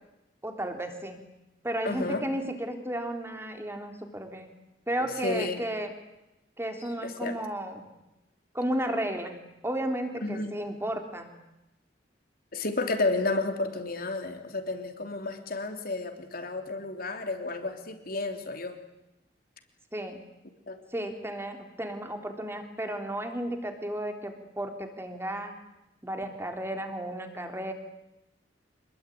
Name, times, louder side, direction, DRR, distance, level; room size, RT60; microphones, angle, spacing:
voice 1, 0.4-1.2 1.6-4.5 4.9-5.9 6.6-7.9 8.5-9.4 9.6-11.3 19.9-20.2 20.9-25.5 26.0-27.7, right 1 dB, 15° right, 4 dB, 3.5 m, -33 dB
voice 2, 1.8-2.2 5.0-5.7 7.0-7.4 10.2-10.5 12.5-18.8 20.7-20.8, left 3 dB, 55° left, 5 dB, 3.3 m, -31 dB
26.5 x 21.5 x 9.4 m, 0.94 s
head